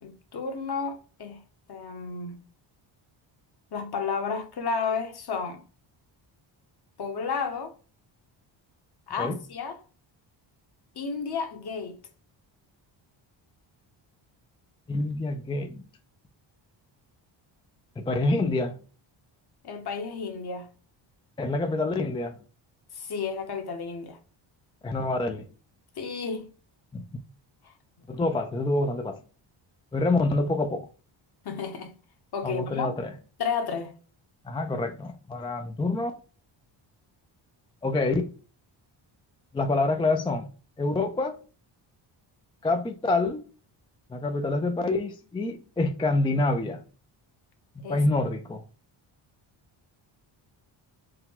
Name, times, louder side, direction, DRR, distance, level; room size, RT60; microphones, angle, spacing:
voice 1, 0.0-1.4 1.7-2.4 3.7-5.6 7.0-7.7 9.1-9.8 11.0-12.0 19.6-20.7 22.9-24.2 26.0-26.5 31.4-31.9 32.3-32.9 33.4-34.0 47.8-48.0, left 5 dB, 50° left, 1.1 m, -32 dB
voice 2, 14.9-15.8 18.0-18.8 21.4-22.4 24.8-25.4 26.9-27.0 28.1-29.2 29.9-30.9 32.4-33.1 34.4-36.1 37.8-38.3 39.5-40.5 40.8-41.4 42.6-43.4 44.1-46.8 47.8-48.6, left 2 dB, 10° left, 0.3 m, -27 dB
4.6 x 2.2 x 3.7 m
cardioid pair, 105°, 48 cm